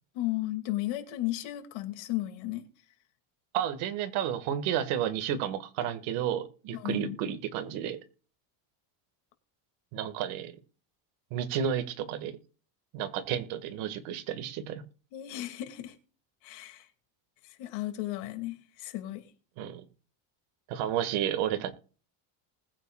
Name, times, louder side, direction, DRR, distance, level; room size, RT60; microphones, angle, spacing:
voice 1, 0.1-2.6 6.7-7.2 15.1-15.9 16.4-16.9 17.4-19.2, left 16 dB, 75° left, 2.5 m, -34 dB
voice 2, 3.5-8.0 9.9-10.5 11.3-12.3 12.9-14.8 19.6-19.8 20.7-21.7, right 9 dB, 75° right, 1.9 m, -31 dB
20.5 x 9.0 x 2.4 m
cardioid pair, 140°, 50 cm